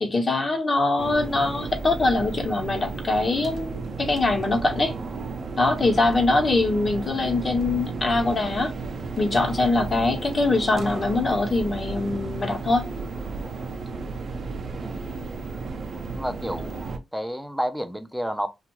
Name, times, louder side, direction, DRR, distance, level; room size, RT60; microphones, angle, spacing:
voice 1, 0.0-4.9 5.6-8.7 9.2-12.9, left 2 dB, 40° left, 1.0 m, -23 dB
sound 1, 1.0-17.0, right 4 dB, 60° right, 0.6 m, -33 dB
voice 2, 16.1-16.7 17.1-18.5, equal, ahead, 0.5 m, -30 dB
2.6 x 2.4 x 3.0 m
cardioid pair, 70°, 0 cm